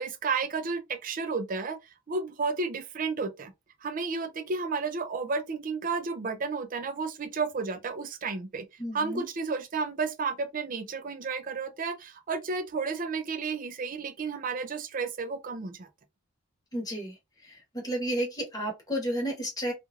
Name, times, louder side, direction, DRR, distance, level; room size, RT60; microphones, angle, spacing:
voice 1, 0.0-1.8 2.1-3.5 3.8-8.7 8.9-15.9, right 4 dB, 40° right, 0.4 m, -32 dB
voice 2, 8.8-9.2 16.7-17.2 17.4-19.7, equal, 15° left, 1.1 m, -32 dB
3.0 x 2.5 x 2.4 m
head